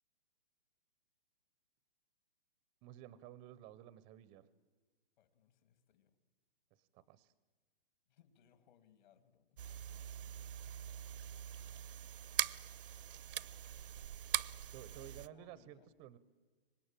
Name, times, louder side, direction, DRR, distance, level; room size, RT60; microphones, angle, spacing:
voice 1, 2.8-4.5 6.7-7.3 14.7-16.2, right 12 dB, 15° right, 17 dB, 0.6 m, -54 dB
voice 2, 5.2-6.1 8.1-10.4 14.9-15.9, left 8 dB, 50° left, 11 dB, 2.4 m, -68 dB
sound 1, 9.6-15.3, right 10 dB, 65° right, 0.7 m, -42 dB
24.5 x 20.0 x 8.9 m, 1.4 s
hypercardioid pair, 150°, 29 cm